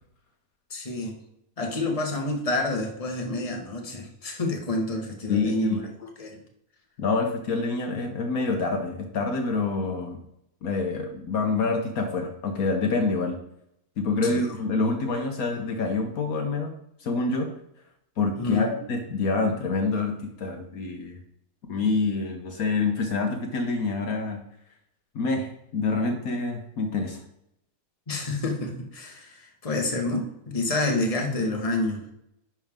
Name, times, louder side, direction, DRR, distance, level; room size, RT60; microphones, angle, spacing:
voice 1, 0.7-1.2 1.6-5.8 6.2-6.4 14.2-14.4 18.4-18.7 28.1-32.0, left 2 dB, 25° left, 2 dB, 1.4 m, -28 dB
voice 2, 5.3-5.8 7.0-10.2 10.6-13.4 14.0-17.5 18.2-21.2 21.7-24.4 25.1-27.2, left 3 dB, 65° left, 4 dB, 1.4 m, -27 dB
10.5 x 6.1 x 3.6 m, 0.77 s
omnidirectional pair, 1.7 m